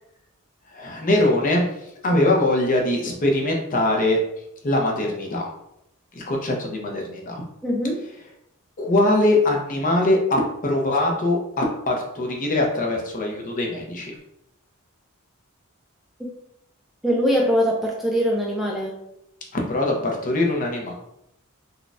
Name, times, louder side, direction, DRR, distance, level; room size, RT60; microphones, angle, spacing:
voice 1, 0.7-1.7 2.0-4.2 4.6-5.5 6.1-7.4 8.8-14.1 19.5-20.9, left 1 dB, 40° left, 0 dB, 0.6 m, -22 dB
voice 2, 7.6-8.0 16.2-16.3 17.0-19.0, equal, ahead, -3 dB, 0.3 m, -22 dB
3.9 x 2.2 x 2.4 m, 0.80 s
head